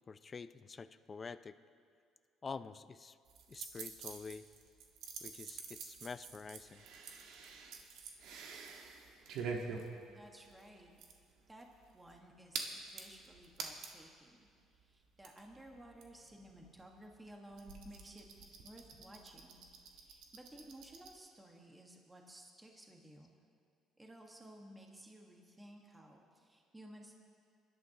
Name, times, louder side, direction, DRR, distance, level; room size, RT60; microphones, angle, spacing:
voice 1, 0.0-1.6 2.4-3.1 3.5-4.4 5.2-6.8, left 5 dB, 25° left, 13 dB, 0.4 m, -47 dB
sound 1, 3.3-14.1 14.5-14.6 14.7-21.1, right 5 dB, 75° right, 1.5 m, -47 dB
voice 2, 10.1-10.9 11.5-11.7 11.9-18.3 18.6-19.6 19.9-23.3 24.0-27.1, right 1 dB, 10° right, 0 dB, 1.5 m, -56 dB
24.5 x 12.0 x 2.9 m, 2.3 s
cardioid pair, 130°, 0 cm